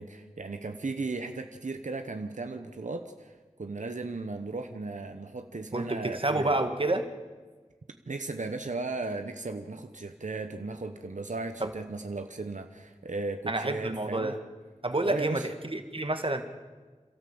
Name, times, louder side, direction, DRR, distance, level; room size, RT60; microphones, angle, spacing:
voice 1, 0.0-3.3 3.6-6.6 8.1-14.3 15.1-15.5, right 3 dB, 85° right, 7 dB, 1.0 m, -36 dB
voice 2, 5.7-7.0 11.6-11.7 13.5-14.4 14.8-16.4, right 2 dB, 45° right, 7 dB, 1.7 m, -29 dB
28.5 x 13.0 x 7.8 m, 1.4 s
wide cardioid pair, 55°, 12 cm